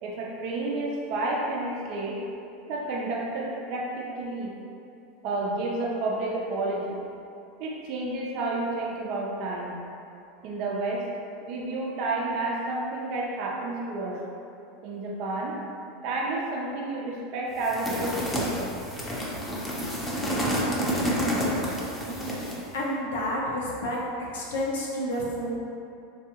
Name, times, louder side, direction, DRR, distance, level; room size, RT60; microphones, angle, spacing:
voice 1, 0.0-2.2 2.7-4.5 5.2-7.0 7.6-9.8 10.4-11.1 11.4-14.2 14.8-15.6 16.0-18.7, right 2 dB, 60° right, -3 dB, 0.4 m, -30 dB
sound 1, 17.6-22.7, equal, 10° left, 0.6 m, -29 dB
voice 2, 22.7-24.0 24.3-25.6, left 1 dB, 85° left, -3 dB, 0.6 m, -30 dB
3.4 x 2.3 x 2.8 m, 2.6 s
hypercardioid pair, 105°, 0 cm